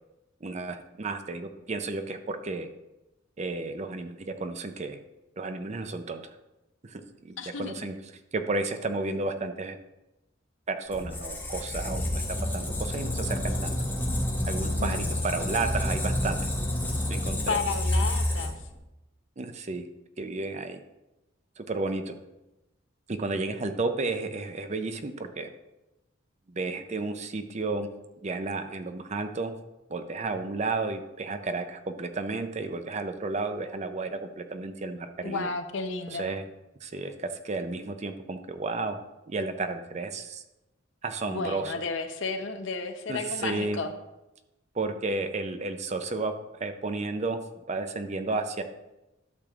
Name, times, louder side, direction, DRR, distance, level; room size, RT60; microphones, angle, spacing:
voice 1, 0.4-2.7 3.4-5.0 5.4-6.3 6.9-7.9 8.3-9.8 10.7-13.8 14.5-16.4 17.1-17.6 19.4-19.8 20.2-20.8 21.6-22.1 23.1-25.5 26.6-27.9 28.2-29.5 29.9-35.5 36.1-36.4 36.8-37.1 37.4-39.0 39.3-40.4 41.0-41.7 43.1-43.8 44.8-46.3 46.6-47.4 47.7-48.6, right 3 dB, 35° right, 8 dB, 0.5 m, -32 dB
voice 2, 7.4-7.9 14.8-15.4 17.5-18.6 35.2-36.3 41.2-43.9, left 4 dB, 65° left, 7 dB, 0.7 m, -33 dB
Squeak, 10.9-18.8, left 1 dB, 10° left, 1.2 m, -29 dB
12.0 x 6.7 x 2.4 m, 0.97 s
head